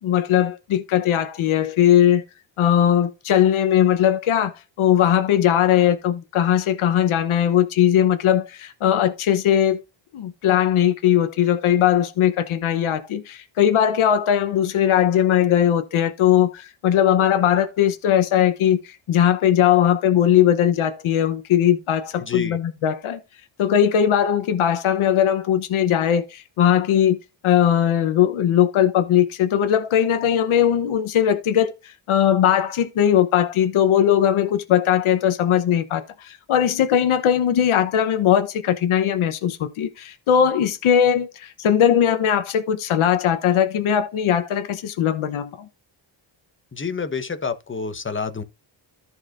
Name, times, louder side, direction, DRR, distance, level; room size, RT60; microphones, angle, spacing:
voice 1, 0.0-2.2 2.6-4.5 4.8-9.8 10.1-23.2 23.6-27.2 27.4-45.7, left 10 dB, 85° left, 1.0 m, -19 dB
voice 2, 22.2-22.6 46.7-48.4, left 5 dB, 25° left, 1.1 m, -28 dB
14.5 x 4.8 x 2.5 m
cardioid pair, 95°, 47 cm